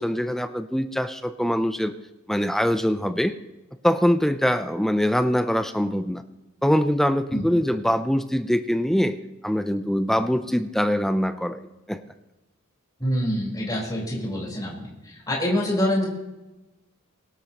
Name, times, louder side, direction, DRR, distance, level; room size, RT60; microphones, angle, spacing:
voice 1, 0.0-1.9 2.3-3.4 3.8-6.2 6.6-9.2 9.4-11.6 11.9-12.0, equal, ahead, 9 dB, 0.5 m, -23 dB
voice 2, 13.0-16.0, left 1 dB, 20° left, -4 dB, 4.4 m, -26 dB
23.5 x 12.5 x 2.9 m, 1.1 s
head